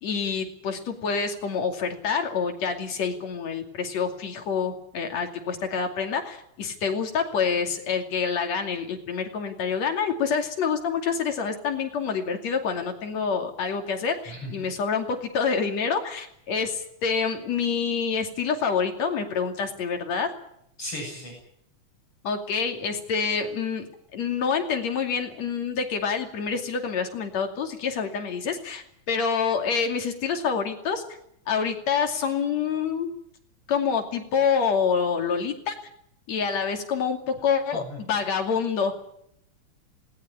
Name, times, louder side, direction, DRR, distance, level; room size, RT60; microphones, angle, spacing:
voice 1, 0.0-20.3 22.2-23.9 24.1-31.0 31.5-33.1 33.7-35.7 36.3-39.0, left 6 dB, 65° left, 5 dB, 3.8 m, -27 dB
voice 2, 14.3-14.7 20.8-21.3 37.7-38.0, left 1 dB, 45° left, 0 dB, 8.4 m, -36 dB
19.5 x 18.5 x 9.8 m, 0.74 s
omnidirectional pair, 3.4 m